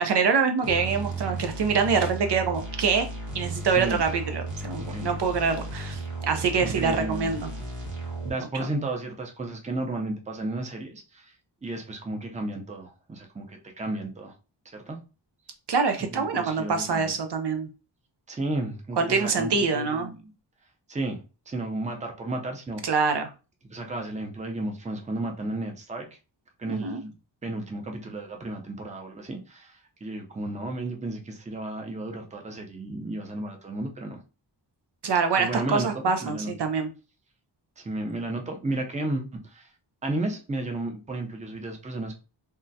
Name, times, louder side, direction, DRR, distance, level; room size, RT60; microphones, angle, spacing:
voice 1, 0.0-3.1 3.3-7.5 15.7-17.7 19.0-20.1 22.8-23.3 26.7-27.0 35.0-36.9, right 5 dB, 65° right, 0.6 m, -25 dB
sound 1, 0.6-8.3, right 2 dB, 40° right, 1.4 m, -35 dB
voice 2, 6.6-7.3 8.2-11.3 11.6-14.3 14.6-15.0 16.1-17.1 18.3-20.3 20.9-22.8 23.7-26.1 26.6-27.1 27.4-34.2 35.4-36.5 37.8-39.7 40.0-42.1, right 2 dB, 15° right, 0.6 m, -33 dB
3.6 x 2.1 x 2.6 m
wide cardioid pair, 90°, 45 cm